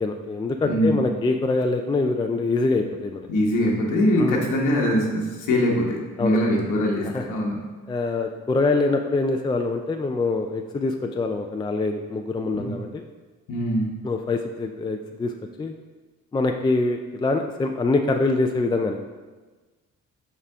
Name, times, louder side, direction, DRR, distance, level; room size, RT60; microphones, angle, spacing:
voice 1, 0.0-3.3 4.2-4.4 6.2-6.4 7.1-7.2 7.9-13.0 14.0-15.3 15.6-15.7 16.3-19.0, left 3 dB, 15° left, 4 dB, 0.3 m, -24 dB
voice 2, 0.6-1.0 3.3-7.6 12.5-12.8 13.5-13.9, equal, 90° left, -1 dB, 1.2 m, -22 dB
5.6 x 4.9 x 3.5 m, 1.3 s
cardioid pair, 90°, 30 cm